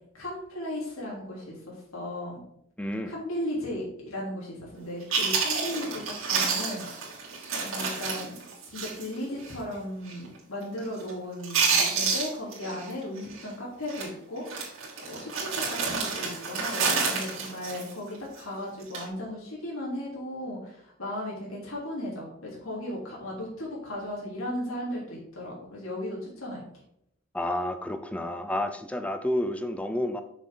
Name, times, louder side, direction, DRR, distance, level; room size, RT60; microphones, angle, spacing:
voice 1, 0.1-2.4 3.1-7.3 7.6-8.4 8.7-26.6, left 1 dB, 80° left, -4 dB, 3.4 m, -36 dB
voice 2, 2.8-3.1 27.3-30.2, left 1 dB, 5° left, 8 dB, 0.5 m, -30 dB
Chewing mastication, 4.8-4.9 5.1-9.1 9.4-9.6 10.1-10.4 10.6-11.1 11.4-12.9 13.2-13.4 13.9-14.1 14.5-18.4 18.8-19.1, right 5 dB, 80° right, 2.8 m, -29 dB
7.5 x 6.5 x 3.9 m, 0.73 s
head